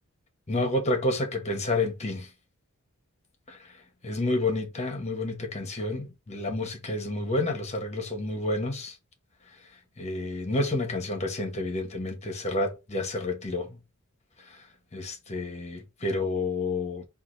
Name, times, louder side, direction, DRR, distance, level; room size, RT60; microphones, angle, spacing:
voice 1, 0.5-2.3 3.5-3.6 4.0-8.9 10.0-13.8 14.9-17.1, left 2 dB, 30° left, 1.0 m, -29 dB
4.7 x 2.5 x 3.8 m
head